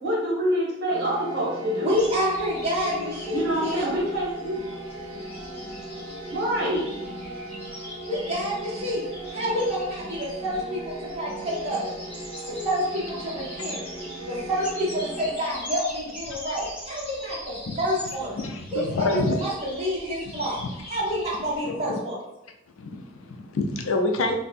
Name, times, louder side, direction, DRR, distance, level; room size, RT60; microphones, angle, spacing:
voice 1, 0.0-1.9 3.3-4.6 6.3-6.9, equal, 55° right, -6 dB, 1.4 m, -26 dB
sound 1, 0.9-15.8, right 1 dB, 85° right, 0.8 m, -38 dB
voice 2, 1.8-3.9 8.1-9.0 9.3-11.9 12.5-13.8 14.3-18.4 18.7-20.6 20.9-22.2, equal, 30° right, -7 dB, 1.1 m, -28 dB
sound 2, 1.9-21.6, left 1 dB, 10° left, 1.0 m, -42 dB
voice 3, 18.4-19.4 20.6-20.7 21.6-22.0 22.8-24.4, left 2 dB, 75° left, 5 dB, 0.4 m, -27 dB
2.6 x 2.2 x 4.0 m, 0.89 s
head